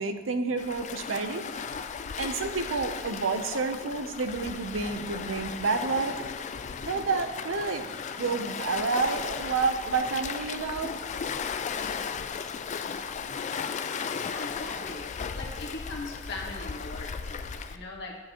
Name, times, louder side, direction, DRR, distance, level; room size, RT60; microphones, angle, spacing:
voice 1, 0.0-1.4 2.2-6.2 6.9-7.9 8.2-10.9, right 4 dB, 85° right, 8 dB, 0.7 m, -29 dB
Waves surf, 0.6-17.8, left 6 dB, 40° left, 0.4 m, -36 dB
voice 2, 14.2-18.2, left 2 dB, 60° left, -1 dB, 1.4 m, -40 dB
9.9 x 8.6 x 3.0 m, 1.5 s
head